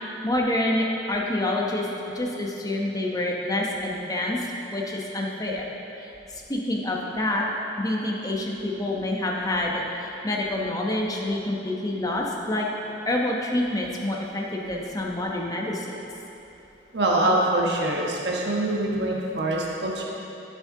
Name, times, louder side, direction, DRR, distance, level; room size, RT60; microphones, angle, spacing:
voice 1, 0.0-5.7 6.0-7.4 7.8-12.7 13.0-16.0, left 1 dB, 20° left, -1 dB, 1.0 m, -27 dB
voice 2, 16.9-20.1, right 1 dB, 70° right, -3 dB, 1.2 m, -24 dB
14.0 x 6.5 x 3.8 m, 3.0 s
head